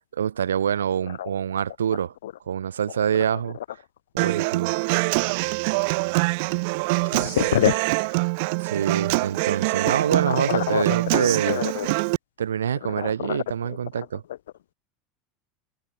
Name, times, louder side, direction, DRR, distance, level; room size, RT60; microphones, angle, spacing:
voice 1, 0.1-2.1 2.5-3.6 4.2-4.7 8.6-11.6 12.4-14.2, right 8 dB, 70° right, 2.7 m, -25 dB
Human voice / Acoustic guitar, 4.2-12.2, right 30 dB, 55° right, 4.2 m, -24 dB
voice 2, 7.1-7.8 10.3-10.8 11.1-11.9 13.0-13.4, left 12 dB, 65° left, 0.7 m, -25 dB
figure-of-eight pair, 75°, 0 cm